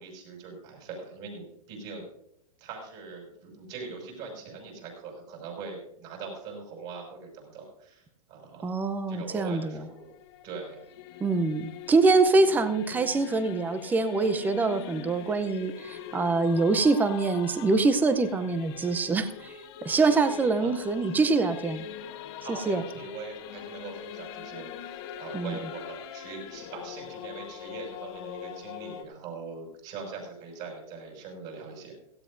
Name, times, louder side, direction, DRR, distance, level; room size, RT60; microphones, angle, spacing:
voice 1, 0.0-2.1 2.6-8.7 9.1-10.1 10.4-10.8 20.6-20.7 22.4-32.0, right 4 dB, 35° right, 1 dB, 6.3 m, -42 dB
voice 2, 8.6-9.8 11.2-19.5 19.8-21.8 22.7-22.8 25.3-25.5, right 3 dB, 10° right, 11 dB, 0.6 m, -24 dB
Singing / Musical instrument, 9.7-29.0, left 10 dB, 45° left, 1.4 m, -42 dB
17.0 x 15.5 x 2.6 m, 0.74 s
hypercardioid pair, 145°, 19 cm